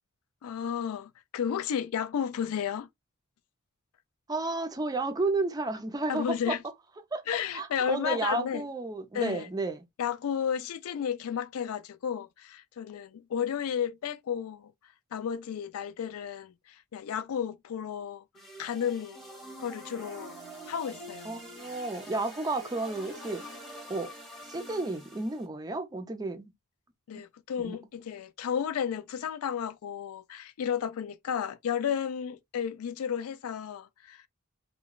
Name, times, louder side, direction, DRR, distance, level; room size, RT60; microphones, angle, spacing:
voice 1, 0.4-2.9 6.1-6.6 7.3-8.6 9.1-9.5 10.0-14.7 15.1-18.2 18.6-19.2 19.6-20.4 20.7-21.3 27.1-34.2, left 8 dB, 75° left, 0.3 m, -33 dB
voice 2, 4.3-6.6 7.1-7.2 7.5-9.8 21.2-23.4 23.9-24.1 24.4-26.5 27.1-27.2 27.6-27.8, right 3 dB, 15° right, 0.4 m, -32 dB
sound 1, 18.3-25.5, equal, ahead, 0.8 m, -46 dB
3.0 x 2.2 x 2.2 m
head